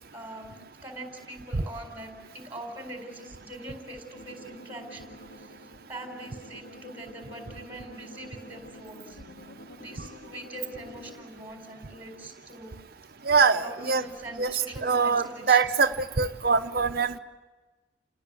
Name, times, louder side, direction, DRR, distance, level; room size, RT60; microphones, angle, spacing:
voice 1, 0.1-0.5 0.8-5.5 5.9-9.2 9.8-12.7 13.5-15.6, right 1 dB, 10° right, 4 dB, 4.4 m, -42 dB
sound 1, 4.1-11.3, left 1 dB, 80° left, 2.5 m, -49 dB
voice 2, 13.2-14.1 14.4-17.2, right 5 dB, 50° right, 7 dB, 0.9 m, -24 dB
29.0 x 19.0 x 8.5 m, 1.2 s
head